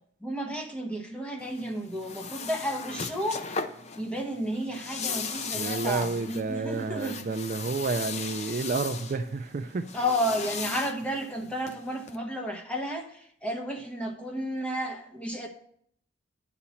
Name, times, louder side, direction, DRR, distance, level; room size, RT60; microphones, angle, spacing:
voice 1, 0.2-3.4 3.9-7.2 9.9-15.5, equal, 5° left, 2 dB, 1.0 m, -32 dB
sound 1, 1.4-12.2, left 5 dB, 35° left, 0.5 m, -38 dB
voice 2, 5.5-9.9, right 4 dB, 40° right, 8 dB, 0.3 m, -30 dB
9.8 x 4.2 x 7.0 m, 0.66 s
head